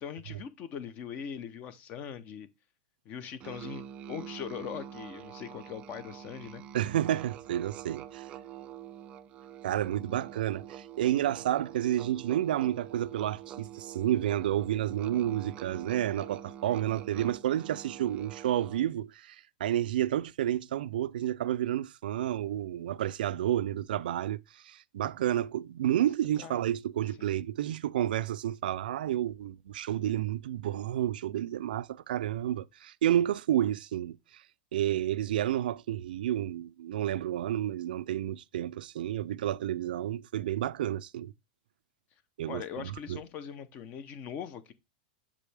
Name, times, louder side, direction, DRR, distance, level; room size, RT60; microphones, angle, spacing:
voice 1, 0.0-2.5 3.0-6.6 26.4-26.6 27.2-27.3 42.5-44.7, left 8 dB, 30° left, 0.7 m, -41 dB
Musical instrument, 3.4-19.0, right 10 dB, 25° right, 0.4 m, -46 dB
voice 2, 6.7-8.3 9.6-34.4 34.7-41.3 42.4-43.2, right 12 dB, 90° right, 0.4 m, -30 dB
7.2 x 4.9 x 3.4 m
supercardioid pair, 165°, 5 cm